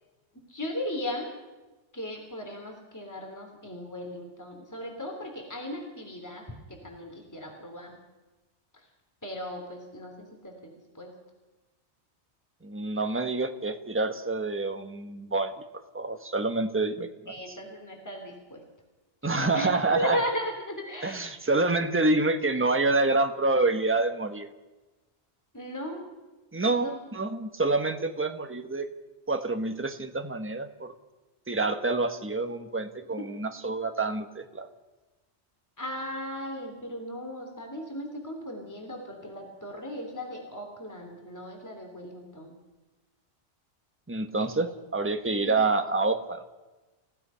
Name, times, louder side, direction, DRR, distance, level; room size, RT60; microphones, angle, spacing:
voice 1, 0.5-1.3 1.9-6.4 6.7-8.0 9.2-11.1 17.3-18.6 19.5-21.3 25.5-26.0 26.7-27.0 33.2-33.3 35.8-42.6 44.4-44.5 45.3-45.6, equal, 15° left, 2 dB, 3.3 m, -36 dB
voice 2, 12.6-15.5 15.9-17.6 19.2-20.2 21.0-24.5 26.5-28.9 29.3-30.9 31.5-34.7 44.1-46.4, right 3 dB, 10° right, 7 dB, 1.2 m, -27 dB
29.5 x 16.0 x 5.7 m, 1.1 s
omnidirectional pair, 1.2 m